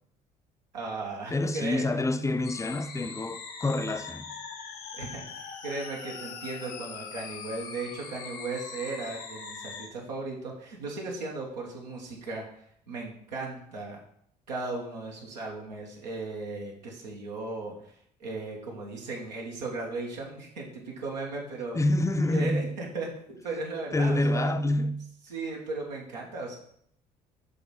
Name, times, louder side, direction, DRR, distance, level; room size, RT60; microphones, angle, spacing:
voice 1, 0.7-1.9 4.9-5.3 5.6-14.0 14.5-21.8 22.3-24.5 25.3-26.6, right 3 dB, 90° right, 1.2 m, -36 dB
voice 2, 1.3-4.3 21.7-22.6 23.9-25.0, left 1 dB, 15° left, 0.5 m, -27 dB
sound 1, 2.4-9.9, left 5 dB, 75° left, 1.0 m, -41 dB
6.6 x 3.5 x 4.1 m
hypercardioid pair, 55°, 21 cm